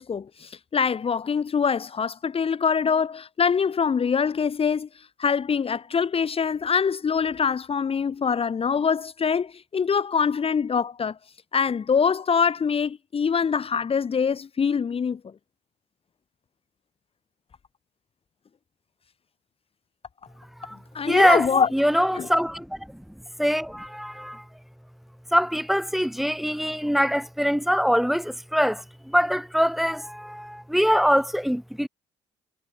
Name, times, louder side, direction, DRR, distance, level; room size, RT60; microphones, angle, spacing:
voice 1, 0.0-4.9 5.2-11.2 11.5-15.2 20.9-21.7 22.2-22.3, left 6 dB, 40° left, 1.5 m, -24 dB
voice 2, 21.0-23.0 23.4-24.4 25.3-31.9, equal, ahead, 2.3 m, -23 dB
hypercardioid pair, 55°, 16 cm